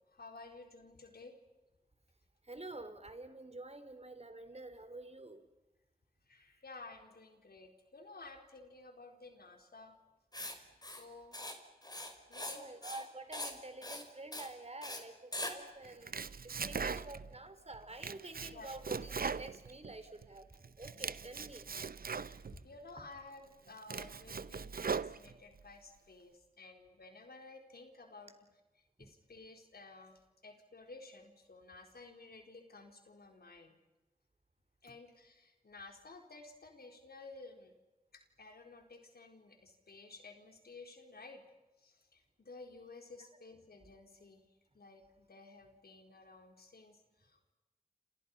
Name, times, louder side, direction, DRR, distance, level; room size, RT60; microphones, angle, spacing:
voice 1, 0.1-1.4 6.3-10.0 10.8-11.4 12.3-12.7 18.5-18.7 22.1-28.3 29.0-33.7 34.8-37.7 38.1-41.4 41.8-44.5 44.7-47.5, left 3 dB, 80° left, 4 dB, 4.4 m, -54 dB
voice 2, 2.4-5.4 10.6-10.7 12.5-21.7 29.0-29.1, right 2 dB, 40° right, 9 dB, 4.0 m, -49 dB
Writing, 10.3-10.5 10.8-11.0 11.3-11.5 11.8-12.6 12.8-13.1 13.3-13.5 13.8-14.0 14.3-14.5 14.8-15.0 15.3-15.5, left 1 dB, 25° left, 5.1 m, -42 dB
Domestic sounds home sounds, 15.8-17.4 17.7-20.3 20.6-22.6 23.2-23.3 23.7-25.6, right 5 dB, 65° right, 0.8 m, -40 dB
29.5 x 28.0 x 5.6 m, 1.1 s
cardioid pair, 45°, 16 cm